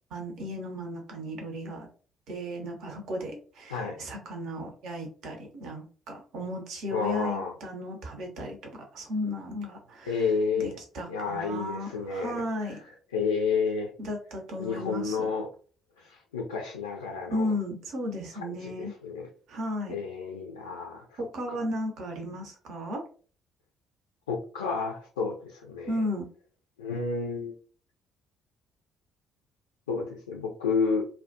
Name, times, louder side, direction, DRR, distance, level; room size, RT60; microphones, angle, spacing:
voice 1, 0.1-1.9 2.3-10.1 10.6-12.8 14.0-15.3 17.3-18.9 19.5-20.0 21.2-23.0 25.9-26.3, left 1 dB, 60° right, 3 dB, 0.6 m, -35 dB
voice 2, 6.9-7.5 10.0-10.8 11.1-12.8 13.1-13.9 14.6-15.5 16.0-17.5 18.6-19.3 19.9-21.6 24.3-26.0 26.8-27.5 29.9-31.1, left 5 dB, 80° left, 0 dB, 0.3 m, -31 dB
2.2 x 2.2 x 2.5 m, 0.41 s
figure-of-eight pair, 45°, 0 cm